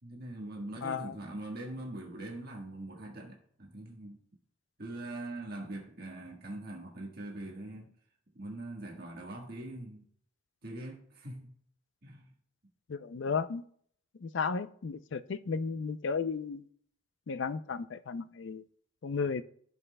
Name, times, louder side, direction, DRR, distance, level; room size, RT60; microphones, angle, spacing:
voice 1, 0.0-4.2 4.8-7.9 8.3-10.1 10.6-11.5 12.0-12.3, right 1 dB, 50° right, 1.4 m, -42 dB
voice 2, 0.8-1.1 12.9-13.6 14.2-16.6 17.3-18.6 19.0-19.4, left 5 dB, 60° left, 0.4 m, -34 dB
15.0 x 5.5 x 2.2 m
head